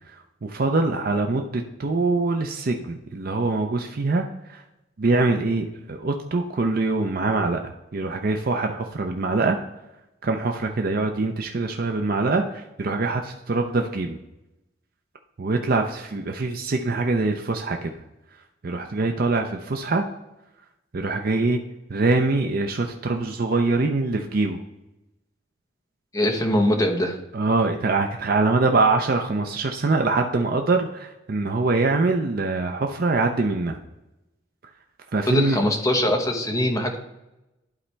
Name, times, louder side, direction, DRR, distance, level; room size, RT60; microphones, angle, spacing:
voice 1, 0.1-4.6 5.0-9.6 10.2-14.2 15.4-17.9 18.6-20.0 20.9-21.6 21.9-24.6 27.3-33.8 35.1-35.6, right 3 dB, 50° right, 4 dB, 0.6 m, -24 dB
voice 2, 26.1-27.2 35.3-37.0, left 1 dB, 20° left, 3 dB, 1.1 m, -22 dB
11.5 x 4.2 x 3.3 m, 0.95 s
head